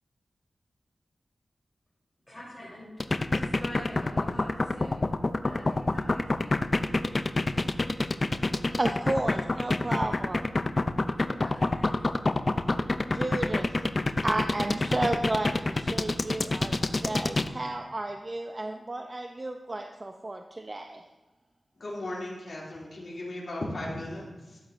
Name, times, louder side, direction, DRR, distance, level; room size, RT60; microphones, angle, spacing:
voice 1, 2.3-2.9 3.3-5.0 5.4-6.5 7.5-7.7 11.4-11.9, equal, 15° left, -8 dB, 3.4 m, -44 dB
sound 1, 3.0-17.5, left 2 dB, 35° left, 0.4 m, -26 dB
voice 2, 8.8-10.5 13.1-13.8 14.2-21.0, right 2 dB, 30° right, 4 dB, 0.5 m, -32 dB
voice 3, 21.8-24.6, left 1 dB, 65° left, -4 dB, 2.6 m, -36 dB
12.5 x 8.9 x 2.6 m, 1.1 s
wide cardioid pair, 110°, 0 cm